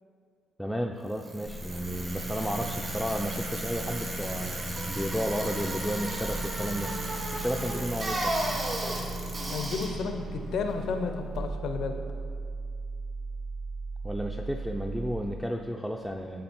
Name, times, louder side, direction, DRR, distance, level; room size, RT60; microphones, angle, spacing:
voice 1, 0.6-6.9 7.3-8.4 14.0-16.4, equal, ahead, 1 dB, 0.3 m, -33 dB
Bicycle, 1.1-11.2, right 1 dB, 40° right, 1.5 m, -34 dB
sound 1, 1.4-15.2, right 3 dB, 80° right, 0.9 m, -39 dB
voice 2, 9.5-11.9, left 5 dB, 75° left, 6 dB, 0.4 m, -32 dB
8.5 x 3.2 x 4.4 m, 2.2 s
cardioid pair, 90°, 0 cm